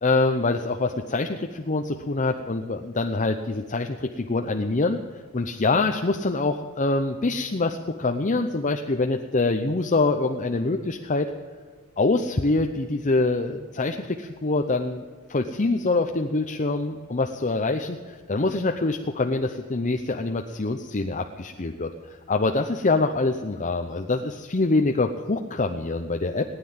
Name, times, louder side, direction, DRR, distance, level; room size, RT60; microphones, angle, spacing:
voice 1, 0.0-11.3 12.0-15.0 15.3-26.4, left 3 dB, 35° left, 4 dB, 0.7 m, -25 dB
19.0 x 9.9 x 7.3 m, 1.5 s
head